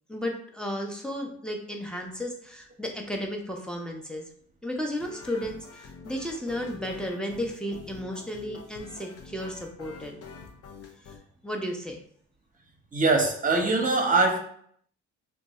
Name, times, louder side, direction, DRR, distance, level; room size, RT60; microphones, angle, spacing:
voice 1, 0.1-4.2 4.6-10.2 11.0-11.1 11.4-12.0, equal, 5° left, 1 dB, 0.6 m, -34 dB
sound 1, 5.0-11.2, left 5 dB, 55° left, 0.6 m, -46 dB
voice 2, 12.9-14.4, right 3 dB, 25° right, 2 dB, 0.9 m, -22 dB
2.6 x 2.3 x 4.1 m, 0.62 s
cardioid pair, 90°, 30 cm